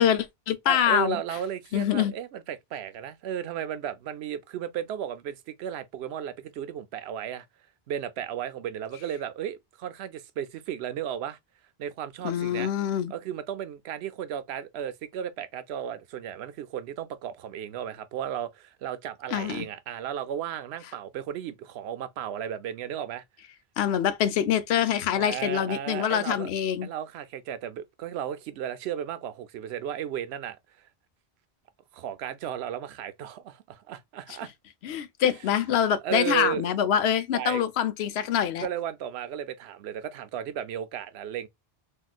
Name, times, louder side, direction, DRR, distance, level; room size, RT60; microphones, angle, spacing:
voice 1, 0.0-1.2 1.7-2.1 12.2-13.1 19.3-19.7 23.8-26.9 34.8-38.7, left 9 dB, 85° left, 0.8 m, -25 dB
voice 2, 0.7-7.5 7.9-11.4 11.8-12.7 13.1-23.2 25.1-26.5 26.8-30.6 31.9-34.5 36.0-36.7 37.3-37.6 38.6-41.5, right 10 dB, 90° right, 0.8 m, -34 dB
3.7 x 2.4 x 2.2 m
omnidirectional pair, 1.0 m